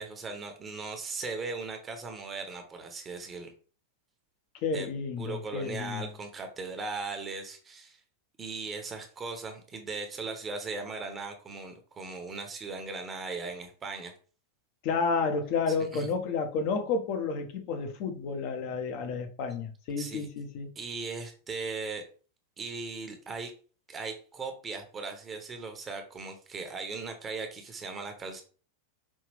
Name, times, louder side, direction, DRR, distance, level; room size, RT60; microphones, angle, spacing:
voice 1, 0.0-3.5 4.7-4.9 5.2-8.0 8.4-14.1 15.7-16.1 20.0-20.3 20.7-22.0 22.6-23.5 23.9-28.4, right 4 dB, 20° right, 1.0 m, -38 dB
voice 2, 4.6-6.1 14.8-20.7, left 4 dB, 45° left, 1.0 m, -31 dB
5.3 x 2.8 x 3.4 m
figure-of-eight pair, 90°, 0 cm